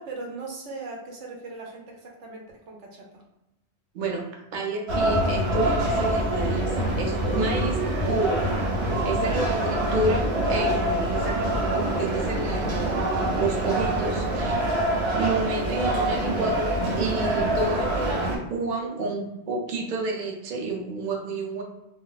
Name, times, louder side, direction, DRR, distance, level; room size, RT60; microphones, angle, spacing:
voice 1, 0.0-3.2 9.2-9.4, right 3 dB, 90° right, -1 dB, 1.1 m, -39 dB
voice 2, 4.5-7.8 8.0-8.4 9.0-13.0 13.3-14.7 15.1-21.6, right 3 dB, 50° right, 0 dB, 0.7 m, -30 dB
sound 1, 4.9-18.4, right 1 dB, 65° right, 1.1 m, -25 dB
2.4 x 2.1 x 3.9 m, 0.90 s
omnidirectional pair, 1.2 m